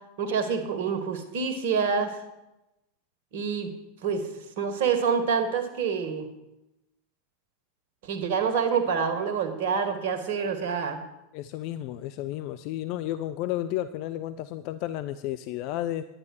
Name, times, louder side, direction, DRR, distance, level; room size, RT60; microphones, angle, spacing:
voice 1, 0.2-2.1 3.3-3.7 4.0-4.2 4.6-6.3 8.0-11.0, right 6 dB, 60° right, 7 dB, 1.8 m, -27 dB
voice 2, 11.3-16.0, left 13 dB, 50° left, 12 dB, 0.5 m, -32 dB
11.5 x 9.7 x 6.4 m, 0.93 s
figure-of-eight pair, 85°, 0 cm